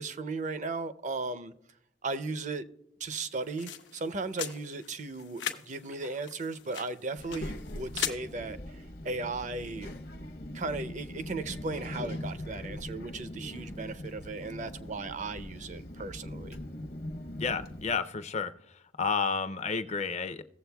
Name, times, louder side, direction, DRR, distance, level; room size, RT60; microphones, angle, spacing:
voice 1, 0.0-1.5 2.0-2.6 3.0-9.9 10.5-16.6, right 3 dB, 40° right, 0.5 m, -36 dB
sound 1, 3.1-8.2, left 9 dB, 90° left, 0.8 m, -40 dB
Child speech kid speaking, 7.2-17.9, left 1 dB, 55° left, 0.9 m, -41 dB
voice 2, 17.4-18.5 19.0-20.4, left 5 dB, 40° left, 0.5 m, -31 dB
17.0 x 7.5 x 2.3 m
head